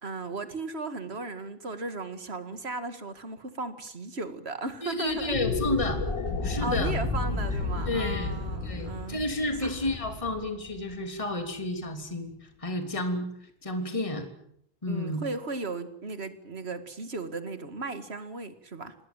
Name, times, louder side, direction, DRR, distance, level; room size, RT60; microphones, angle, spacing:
voice 1, 0.0-5.4 6.6-9.2 9.6-9.7 13.8-14.0 14.9-18.9, right 3 dB, 30° right, 10 dB, 2.3 m, -36 dB
voice 2, 4.8-6.0 6.4-6.9 7.9-8.3 8.6-13.3 13.6-14.3 14.8-15.2, left 1 dB, 15° left, 6 dB, 3.2 m, -31 dB
sound 1, 5.1-10.7, equal, 5° right, 5.7 m, -36 dB
sound 2, 5.2-11.6, left 5 dB, 65° left, 2.4 m, -34 dB
27.5 x 20.0 x 9.1 m, 0.71 s
omnidirectional pair, 2.1 m